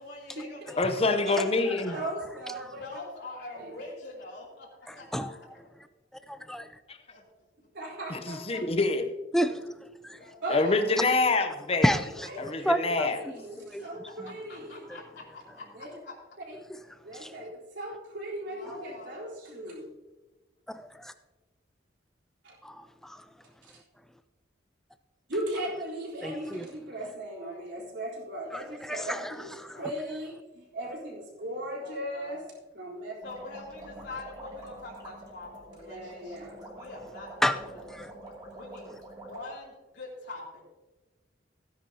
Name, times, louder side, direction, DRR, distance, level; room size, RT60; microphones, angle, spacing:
voice 1, 0.0-2.1 2.7-5.7 7.1-7.2 10.2-11.0 12.8-12.9 13.8-16.2 17.4-17.5 18.4-19.3 27.3-27.9 28.9-29.9 31.4-32.4 33.2-38.1 38.5-38.9 39.3-40.6, left 2 dB, 70° left, -5 dB, 3.0 m, -45 dB
voice 2, 0.8-1.9 6.9-7.0 8.1-9.1 10.5-11.9 12.4-13.2, left 3 dB, 30° left, 7 dB, 0.7 m, -26 dB
voice 3, 1.9-3.0 3.6-3.7 7.7-8.6 10.4-10.8 12.2-14.9 15.7-16.0 16.5-16.6 17.0-19.9 22.4-22.6 23.6-23.8 25.3-32.4 32.7-33.1 35.9-36.6, right 1 dB, 70° right, -5 dB, 3.8 m, -38 dB
voice 4, 4.9-5.3 6.3-6.7 9.3-9.6 10.0-10.2 11.8-12.3 12.6-13.8 17.1-17.3 20.7-21.1 22.6-23.2 26.2-26.7 28.5-29.3 29.6-29.8 37.4-37.6 37.9-38.1, equal, ahead, 11 dB, 0.4 m, -30 dB
sound 1, 33.2-39.4, right 1 dB, 20° right, 2.6 m, -46 dB
16.0 x 10.0 x 2.8 m, 1.2 s
head